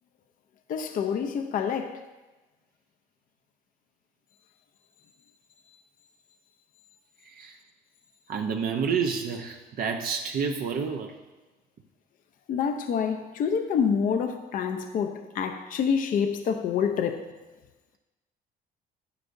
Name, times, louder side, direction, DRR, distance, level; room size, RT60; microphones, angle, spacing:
voice 1, 0.7-2.0 12.5-17.3, left 7 dB, 55° left, 0.6 m, -27 dB
voice 2, 8.3-11.1, right 6 dB, 60° right, 0.7 m, -29 dB
9.8 x 9.3 x 2.6 m
cardioid pair, 110°, 17 cm